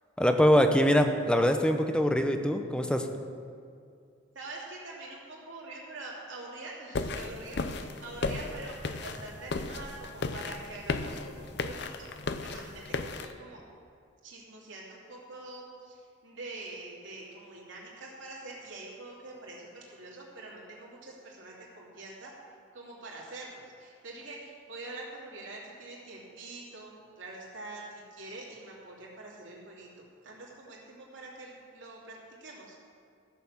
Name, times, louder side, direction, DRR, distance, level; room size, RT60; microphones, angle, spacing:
voice 1, 0.2-3.1, equal, 5° left, 6 dB, 0.7 m, -23 dB
voice 2, 4.3-13.6 14.2-22.3 22.7-32.8, right 2 dB, 75° right, -4 dB, 2.9 m, -45 dB
sound 1, 6.9-13.3, left 3 dB, 60° left, 0.6 m, -35 dB
14.0 x 6.7 x 7.3 m, 2.4 s
head